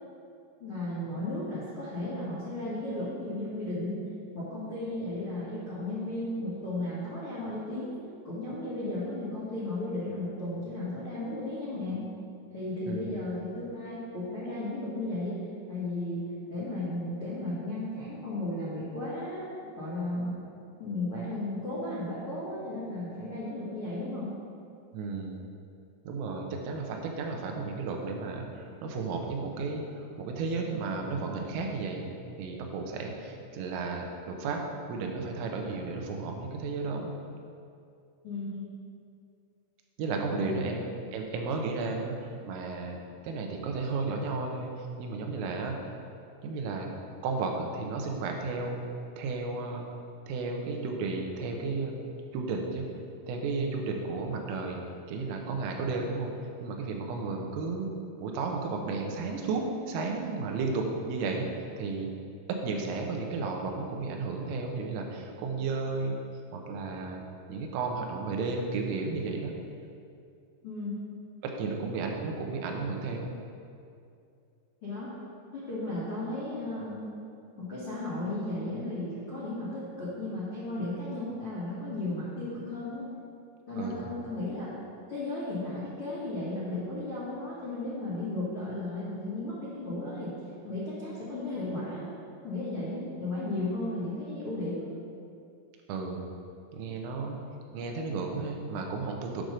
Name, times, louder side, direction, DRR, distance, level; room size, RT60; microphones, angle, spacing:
voice 1, 0.6-4.0 4.3-8.0 8.2-12.0 12.5-15.4 15.7-20.4 20.8-24.3 38.2-38.6 40.3-40.7 70.6-71.0 74.8-75.1 75.5-77.1 77.6-83.0 83.7-84.7 85.1-90.3 90.6-92.1 92.4-94.9, left 2 dB, 80° left, -10 dB, 1.2 m, -35 dB
voice 2, 12.9-13.2 24.9-25.4 26.1-32.1 32.4-34.6 34.9-37.1 40.0-40.8 41.1-42.2 42.5-43.0 43.2-45.8 46.4-46.9 47.2-48.8 49.2-49.9 50.3-52.0 52.3-52.9 53.3-54.8 55.1-56.3 56.6-57.9 58.2-61.5 61.8-62.1 62.5-66.2 66.5-67.2 67.5-69.5 71.4-73.3 83.8-84.1 95.9-96.4 96.7-97.4 97.7-99.4, right 4 dB, 90° right, 2 dB, 3.5 m, -33 dB
8.8 x 6.4 x 5.2 m, 2.5 s
omnidirectional pair, 5.8 m